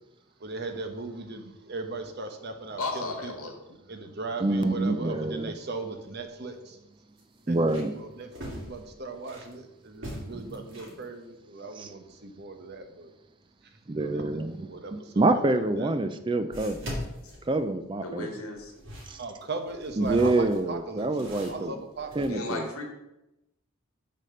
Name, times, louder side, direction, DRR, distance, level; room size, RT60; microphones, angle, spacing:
voice 1, 0.4-3.5 3.9-6.8 7.5-13.1 13.9-15.9 19.2-22.4, right 3 dB, 50° right, 6 dB, 0.9 m, -38 dB
voice 2, 2.8-3.5 18.0-18.7 22.3-22.8, left 3 dB, 85° left, 3 dB, 1.7 m, -34 dB
voice 3, 4.4-5.5 7.5-7.9 10.3-10.4 11.8-11.9 13.9-14.7 15.2-17.0 17.5-18.3 19.1-19.2 20.0-21.7 22.2-22.7, right 2 dB, 20° right, 10 dB, 0.4 m, -26 dB
sound 1, 6.0-6.1 6.5-6.6 7.2-9.5 9.9-11.0 15.3-15.4 16.5-18.1 18.6-22.3, equal, 65° right, 2.6 m, -41 dB
6.5 x 4.3 x 6.3 m, 0.91 s
head